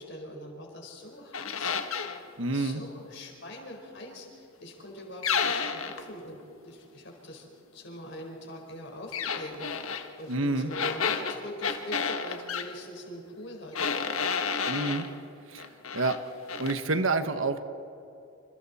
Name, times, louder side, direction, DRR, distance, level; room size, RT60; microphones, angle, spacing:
voice 1, 0.0-1.7 2.5-7.5 7.7-9.7 10.2-13.8 15.0-15.2, left 1 dB, 55° left, 1 dB, 4.6 m, -43 dB
sound 1, 1.3-2.2 5.2-6.0 9.1-10.1 10.7-12.7 13.7-15.1 15.6-16.2 16.5-16.8, left 6 dB, 75° left, 1.4 m, -30 dB
voice 2, 2.4-2.8 10.3-10.7 14.7-15.1 15.5-15.6 15.9-16.2 16.6-17.7, right 3 dB, 65° right, 9 dB, 1.2 m, -28 dB
27.5 x 27.0 x 4.3 m, 2.6 s
head